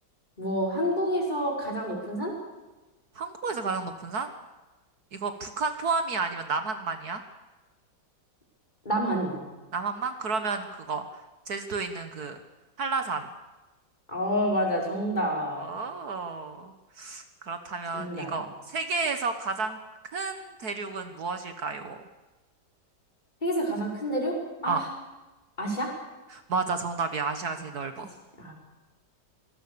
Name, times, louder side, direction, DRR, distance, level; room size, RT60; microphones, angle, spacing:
voice 1, 0.4-2.3 8.9-9.4 14.1-15.6 17.9-18.4 23.4-24.4 24.6-24.9 25.6-25.9 28.4-28.5, equal, 25° left, 0 dB, 5.5 m, -28 dB
voice 2, 3.2-4.3 5.1-7.2 9.7-11.0 11.5-12.4 12.8-13.3 15.6-19.8 20.1-22.0 24.7-24.8 26.3-28.1, right 4 dB, 60° right, 8 dB, 1.8 m, -31 dB
25.5 x 19.0 x 6.9 m, 1.1 s
omnidirectional pair, 1.9 m